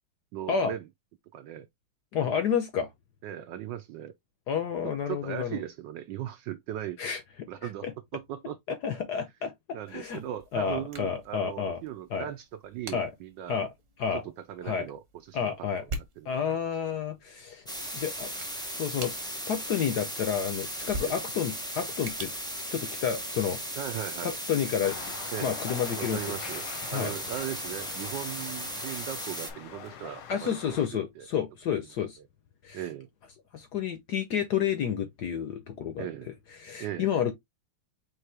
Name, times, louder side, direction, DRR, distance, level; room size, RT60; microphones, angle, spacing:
voice 1, 0.3-0.9 1.3-1.7 3.2-4.1 5.1-7.0 7.5-8.6 9.7-13.6 14.1-14.2 14.5-15.7 16.2-16.6 21.0-21.2 23.8-24.4 25.3-25.6 25.9-26.6 26.9-30.8 31.2-31.3 32.7-33.1 36.0-36.3 36.8-37.1, right 11 dB, 75° right, 1.1 m, -38 dB
voice 2, 2.1-2.9 4.5-5.6 7.0-7.5 7.8-7.9 8.8-9.5 9.9-10.2 10.5-11.8 12.1-12.3 12.9-13.1 13.5-13.7 14.0-14.2 14.6-14.9 15.3-15.8 16.2-17.6 17.9-18.3 18.8-19.1 19.5-22.3 22.7-23.6 24.2-25.1 25.4-26.4 26.9-27.1 30.3-32.2 32.6-32.8 33.5-36.1 36.6-37.3, left 7 dB, 65° left, 1.1 m, -30 dB
sound 1, 9.8-23.5, right 2 dB, 40° right, 1.5 m, -46 dB
sound 2, 17.7-29.5, equal, 5° left, 0.5 m, -37 dB
sound 3, 24.8-30.9, left 8 dB, 80° left, 1.7 m, -43 dB
4.7 x 3.3 x 3.3 m
omnidirectional pair, 2.4 m